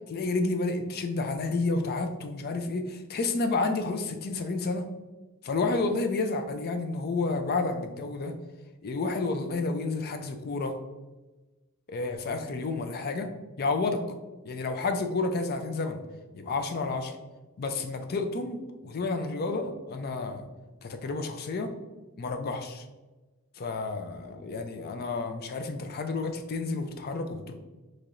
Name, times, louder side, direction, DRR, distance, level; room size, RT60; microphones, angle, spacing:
voice 1, 0.1-4.8 5.4-8.3 8.8-10.8 11.9-13.3 13.6-14.0 14.4-16.0 16.3-17.1 17.6-20.5 20.8-21.7 22.2-22.9 23.6-27.5, left 3 dB, 45° left, 7 dB, 0.4 m, -30 dB
4.6 x 3.0 x 2.5 m, 1.2 s
head